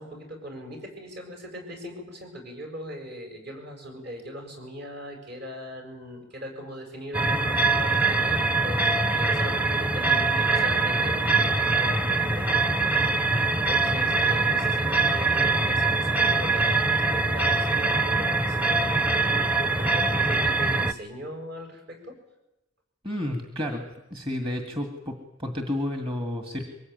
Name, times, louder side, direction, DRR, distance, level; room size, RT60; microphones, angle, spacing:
voice 1, 0.0-12.5 13.2-22.2, equal, 55° right, 4 dB, 7.2 m, -40 dB
sound 1, 7.1-20.9, right 3 dB, 10° right, 0.8 m, -23 dB
voice 2, 23.0-23.8 24.1-25.1 25.4-26.6, left 1 dB, 25° right, 5 dB, 2.1 m, -30 dB
23.5 x 19.5 x 9.4 m, 0.92 s
head